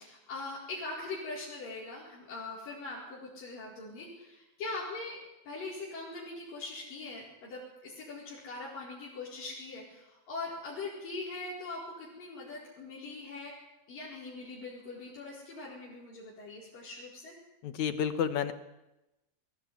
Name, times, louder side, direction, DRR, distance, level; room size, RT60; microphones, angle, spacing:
voice 1, 0.0-5.2 5.4-13.5 13.9-17.3, left 3 dB, 85° left, -6 dB, 6.3 m, -41 dB
voice 2, 17.6-18.5, left 8 dB, 65° left, 12 dB, 2.3 m, -30 dB
21.5 x 17.5 x 9.4 m, 0.96 s
omnidirectional pair, 3.8 m